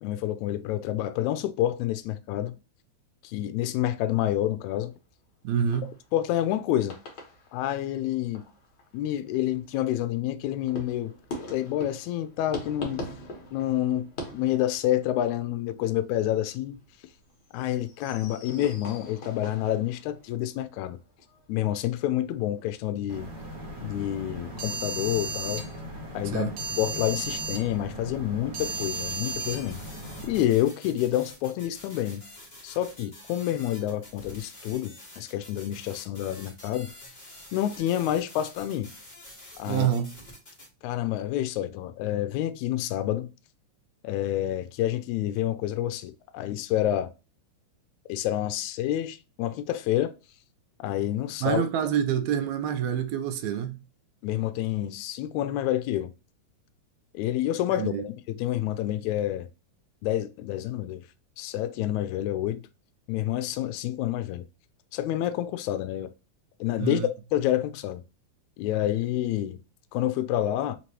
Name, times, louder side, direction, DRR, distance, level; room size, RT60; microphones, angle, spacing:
voice 1, 0.0-2.5 3.2-4.9 6.1-6.9 7.5-8.4 8.9-11.1 11.5-13.0 13.5-16.8 17.5-21.0 21.5-23.3 23.8-25.6 26.1-26.5 26.8-29.8 30.2-32.2 32.6-36.9 37.5-38.9 39.6-39.9 40.8-43.3 44.0-47.1 48.1-50.1 50.8-51.6 54.2-56.1 57.1-59.5 60.0-61.0 61.4-62.6 63.1-64.4 64.9-66.1 66.6-67.0 67.3-68.0 68.6-69.6 69.9-70.8, left 12 dB, 80° left, 1.8 m, -28 dB
sound 1, 4.8-6.5 6.8-7.9 8.3-23.7, left 1 dB, 50° left, 1.6 m, -43 dB
voice 2, 5.4-5.9 26.3-26.5 39.7-40.1 51.4-53.8 57.7-58.0 66.8-67.1, right 9 dB, 80° right, 1.8 m, -27 dB
sound 2, 23.1-30.4, right 2 dB, 50° right, 1.4 m, -35 dB
sound 3, 28.6-40.7, left 1 dB, 20° left, 1.1 m, -48 dB
5.1 x 3.0 x 2.9 m
omnidirectional pair, 3.5 m